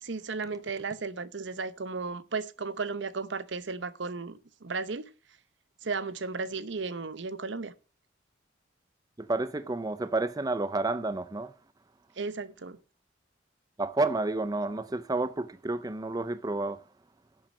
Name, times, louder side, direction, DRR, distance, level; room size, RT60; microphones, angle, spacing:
voice 1, 0.0-5.1 5.8-7.7 12.2-12.8, right 4 dB, 65° right, 0.8 m, -35 dB
voice 2, 9.2-11.5 13.8-16.8, right 2 dB, 20° right, 0.5 m, -30 dB
10.5 x 7.4 x 6.1 m
head